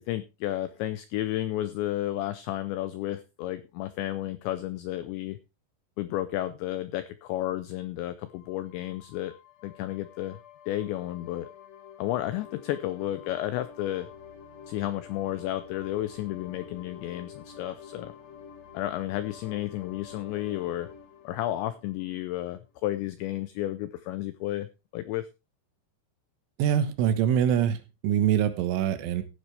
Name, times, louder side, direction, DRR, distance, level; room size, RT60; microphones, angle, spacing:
voice 1, 0.1-5.4 6.0-9.3 9.6-10.4 10.7-11.5 12.0-14.1 14.7-18.1 18.7-20.9 21.2-24.7 24.9-25.3, left 14 dB, 90° left, 13 dB, 2.5 m, -32 dB
sound 1, 8.3-22.7, left 8 dB, 65° left, 1.7 m, -48 dB
voice 2, 26.6-29.2, right 9 dB, 75° right, 10 dB, 3.4 m, -24 dB
15.5 x 9.6 x 3.3 m, 0.27 s
omnidirectional pair, 6.0 m